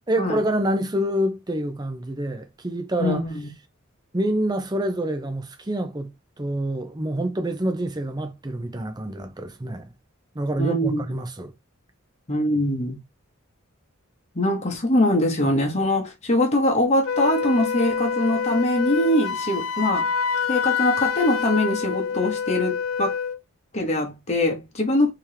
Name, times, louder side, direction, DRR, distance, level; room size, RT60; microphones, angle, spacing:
voice 1, 0.1-3.2 4.1-9.9 10.3-11.5, right 1 dB, 20° right, 0.6 m, -27 dB
voice 2, 3.0-3.5 10.6-11.0 12.3-13.0 14.3-20.1 20.5-23.1 23.7-25.1, left 1 dB, 30° left, 1.0 m, -22 dB
Wind instrument woodwind instrument, 17.0-23.4, left 6 dB, 70° left, 0.4 m, -26 dB
3.4 x 2.9 x 3.3 m
head